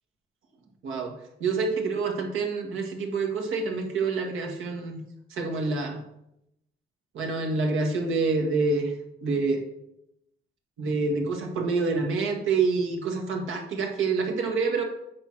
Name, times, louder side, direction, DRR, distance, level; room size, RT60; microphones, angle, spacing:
voice 1, 0.8-1.1 1.4-5.0 5.3-6.0 7.1-8.9 9.2-9.6 10.8-14.8, right 4 dB, 85° right, 2 dB, 1.9 m, -27 dB
8.8 x 4.5 x 5.9 m, 0.82 s
cardioid pair, 90°, 20 cm